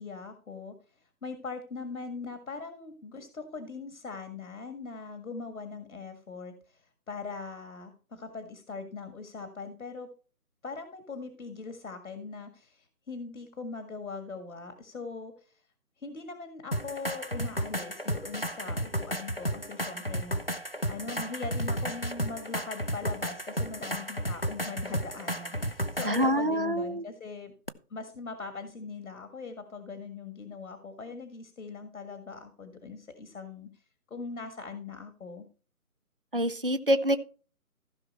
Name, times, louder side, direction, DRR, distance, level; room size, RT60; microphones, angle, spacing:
voice 1, 0.0-10.1 10.6-15.6 16.0-27.5 27.9-33.8 34.1-35.5, left 4 dB, 65° left, 8 dB, 1.8 m, -41 dB
sound 1, 16.7-26.3 27.7-27.8, equal, 45° left, 0.4 m, -33 dB
voice 2, 26.0-27.0 36.3-37.2, equal, 40° right, 12 dB, 0.5 m, -26 dB
15.0 x 5.9 x 4.3 m, 0.38 s
hypercardioid pair, 175°, 45 cm